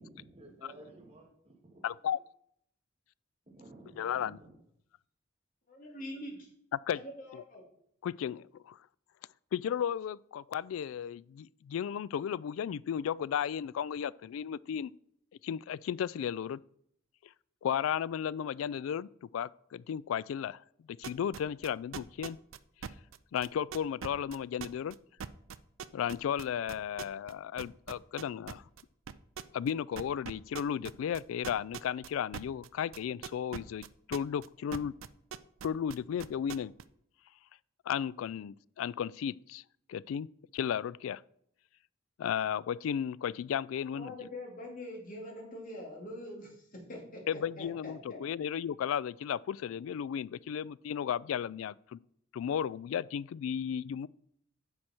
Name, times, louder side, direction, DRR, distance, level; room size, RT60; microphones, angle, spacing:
voice 1, 0.0-2.2 3.5-4.5, right 2 dB, 30° right, 2.4 m, -54 dB
voice 2, 1.8-2.2 4.0-4.4 6.9-7.0 7.3-7.4 8.0-8.8 9.5-14.9 15.4-16.6 17.6-20.6 21.0-22.4 23.3-25.0 25.9-28.6 29.5-34.9 35.6-36.7 37.9-39.6 39.9-41.2 42.2-44.2 47.3-52.0 52.3-54.1, left 8 dB, 85° left, 0.3 m, -34 dB
voice 3, 5.7-6.4 7.0-7.6 43.9-48.2, left 1 dB, 45° left, 2.7 m, -44 dB
sound 1, 21.0-27.3 27.6-28.8 29.1-29.7 30.0-34.5 34.7-36.8, right 7 dB, 80° right, 0.5 m, -41 dB
9.7 x 6.3 x 4.4 m
head